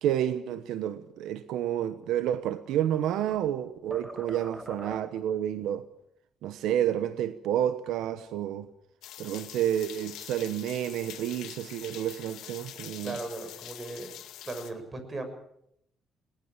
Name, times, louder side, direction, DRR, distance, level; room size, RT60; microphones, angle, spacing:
voice 1, 0.0-5.8 6.4-8.7 9.2-13.2, right 11 dB, 90° right, 1.0 m, -30 dB
sound 1, 2.4-3.6 3.9-5.3, equal, 5° right, 1.2 m, -44 dB
sound 2, 9.0-14.7, left 12 dB, 85° left, 2.1 m, -45 dB
voice 2, 13.0-14.1 14.4-15.2, right 2 dB, 30° right, 6.4 m, -37 dB
21.5 x 19.0 x 7.4 m
cardioid pair, 90°, 0 cm